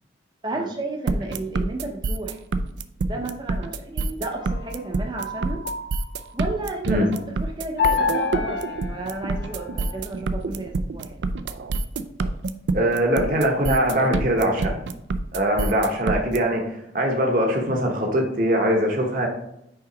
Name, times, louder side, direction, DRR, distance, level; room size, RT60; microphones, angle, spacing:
voice 1, 0.4-2.4 3.0-5.6 6.3-7.1 7.4-11.2, right 2 dB, 25° right, 1 dB, 0.7 m, -32 dB
sound 1, 1.1-16.4, right 3 dB, 75° right, 0.4 m, -26 dB
sound 2, 4.3-6.5 7.8-10.0, left 5 dB, 60° left, 0.5 m, -28 dB
voice 2, 12.7-14.8 15.3-19.3, equal, 45° right, 1 dB, 1.0 m, -22 dB
5.7 x 3.7 x 5.1 m, 0.79 s
head